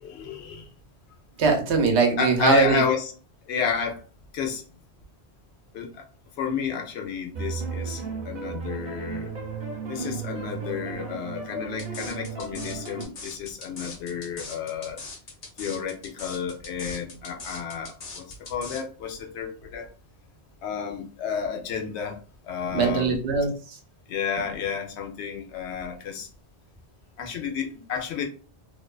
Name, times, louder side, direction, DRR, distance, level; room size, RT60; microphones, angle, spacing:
voice 1, 0.0-0.6 2.2-3.1 3.5-4.0 4.3-4.6 5.7-6.0 6.4-9.3 9.9-15.0 15.6-18.2 18.5-19.9 20.6-22.2 22.4-23.2 24.1-26.3 27.2-28.2, left 7 dB, 85° left, 2 dB, 0.9 m, -31 dB
voice 2, 1.4-2.8 22.7-23.8, right 5 dB, 85° right, 3 dB, 0.9 m, -21 dB
sound 1, 7.3-13.1, right 5 dB, 55° right, 0.8 m, -34 dB
sound 2, 11.8-18.8, left 3 dB, 45° left, 0.6 m, -40 dB
2.5 x 2.2 x 2.3 m, 0.38 s
omnidirectional pair, 1.1 m